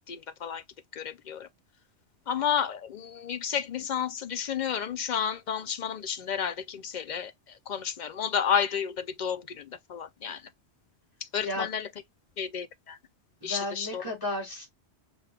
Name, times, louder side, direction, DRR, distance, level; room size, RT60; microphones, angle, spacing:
voice 1, 0.1-0.6 0.9-1.5 2.3-10.5 11.2-11.9 12.4-13.0 13.4-14.1, left 8 dB, 60° left, 0.5 m, -31 dB
voice 2, 13.4-14.7, left 1 dB, 20° left, 2.4 m, -33 dB
5.2 x 2.3 x 3.3 m
omnidirectional pair, 1.1 m